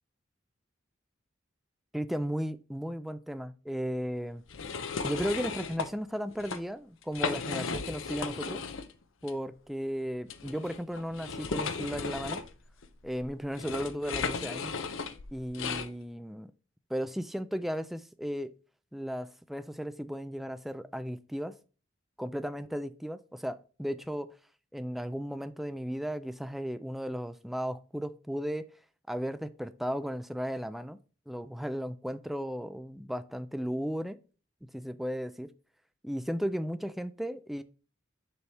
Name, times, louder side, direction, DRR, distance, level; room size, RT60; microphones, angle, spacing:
voice 1, 1.9-4.4 5.0-8.6 9.2-12.4 13.0-14.7 15.3-16.5 16.9-18.5 18.9-21.5 22.2-24.3 24.7-28.7 29.1-31.0 31.3-34.2 34.7-35.5 36.0-37.6, equal, ahead, 0.3 m, -35 dB
sound 1, 4.5-5.9 6.3-6.6 7.0-8.9 9.2-9.3 10.3-15.9, left 5 dB, 85° left, 0.7 m, -35 dB
6.9 x 5.8 x 3.4 m
head